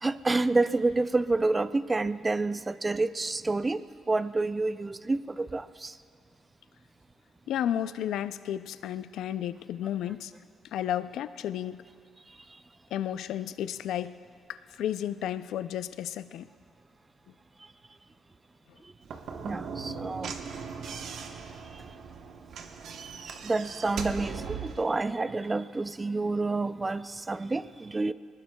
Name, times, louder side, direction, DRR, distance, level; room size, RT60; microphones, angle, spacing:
voice 1, 0.0-6.0 19.3-20.3 23.4-28.1, right 3 dB, 25° right, 14 dB, 0.4 m, -28 dB
voice 2, 7.5-10.3 10.6-11.8 12.9-14.2 14.5-16.5 19.9-20.1, left 11 dB, 80° left, 13 dB, 0.4 m, -33 dB
Slam / Knock, 19.0-24.9, right 6 dB, 70° right, 1.0 m, -39 dB
22.0 x 19.5 x 2.3 m, 2.2 s
cardioid pair, 90°, 0 cm